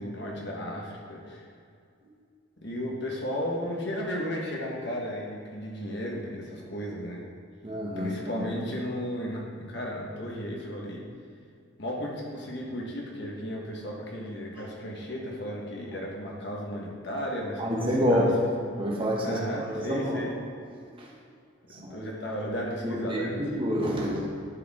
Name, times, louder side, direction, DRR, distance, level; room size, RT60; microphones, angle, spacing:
voice 1, 0.0-1.4 2.6-7.2 8.0-11.0 11.8-18.3 19.2-20.3 21.7-23.4, equal, 55° left, -2 dB, 1.4 m, -34 dB
voice 2, 7.6-8.2 17.6-18.3 18.8-20.3 21.0-21.1 21.7-22.1 22.8-24.3, equal, 25° right, -2 dB, 1.2 m, -28 dB
11.0 x 4.7 x 3.7 m, 2.3 s
head